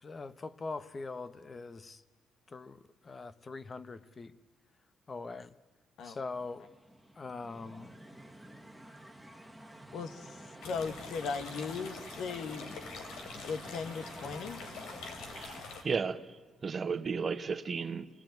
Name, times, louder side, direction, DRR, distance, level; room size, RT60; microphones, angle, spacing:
voice 1, 0.0-2.0 2.5-4.3 5.1-5.6 6.0-6.6 7.2-8.0, left 3 dB, 35° left, 1.1 m, -42 dB
sound 1, 6.3-15.6, right 1 dB, ahead, 1.9 m, -50 dB
voice 2, 9.9-12.8 13.3-14.6, left 5 dB, 75° left, 1.7 m, -38 dB
sound 2, 10.6-15.8, left 4 dB, 90° left, 3.5 m, -46 dB
voice 3, 15.3-16.2 16.6-18.1, right 5 dB, 40° right, 1.3 m, -34 dB
26.5 x 19.5 x 9.3 m
cardioid pair, 90°, 0 cm